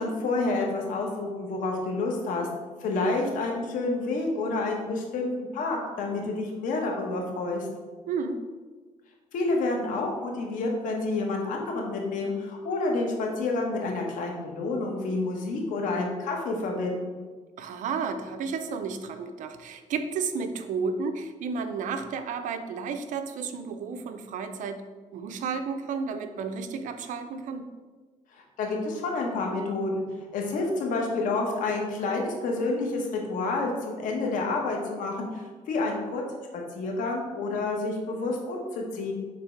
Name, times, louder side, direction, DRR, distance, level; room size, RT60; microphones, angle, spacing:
voice 1, 0.0-2.5 2.8-7.7 9.3-17.3 28.3-30.0 30.3-36.2 36.5-39.1, left 3 dB, 85° left, 0 dB, 1.2 m, -29 dB
voice 2, 8.1-8.4 17.6-24.8 25.1-27.7, right 5 dB, 75° right, 8 dB, 0.6 m, -32 dB
6.0 x 3.6 x 4.5 m, 1.4 s
cardioid pair, 115°, 13 cm